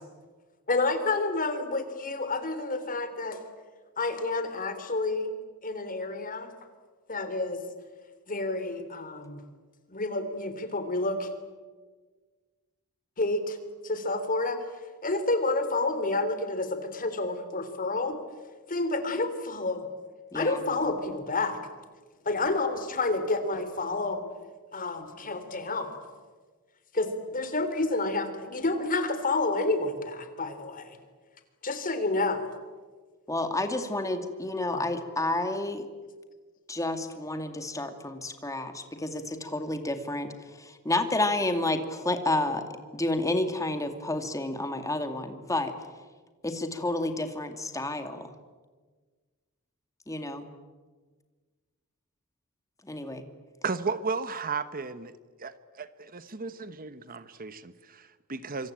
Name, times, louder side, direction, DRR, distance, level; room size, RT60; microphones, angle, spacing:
voice 1, 0.7-3.4 4.0-5.3 5.6-6.5 7.1-7.6 8.3-9.4 9.9-11.3 13.2-13.6 13.8-14.7 15.0-18.2 18.7-19.9 20.3-21.6 22.2-24.2 24.7-25.9 26.9-31.0 31.6-32.4 34.7-34.8, left 2 dB, 40° left, 9 dB, 3.4 m, -29 dB
voice 2, 20.3-20.6 33.3-35.9 36.7-40.3 40.6-42.6 42.9-45.7 46.4-48.3 50.1-50.5 52.8-53.2, left 2 dB, 15° left, 7 dB, 2.4 m, -30 dB
voice 3, 53.6-55.1 55.4-58.7, right 4 dB, 40° right, 13 dB, 1.1 m, -34 dB
26.5 x 25.5 x 8.9 m, 1.4 s
head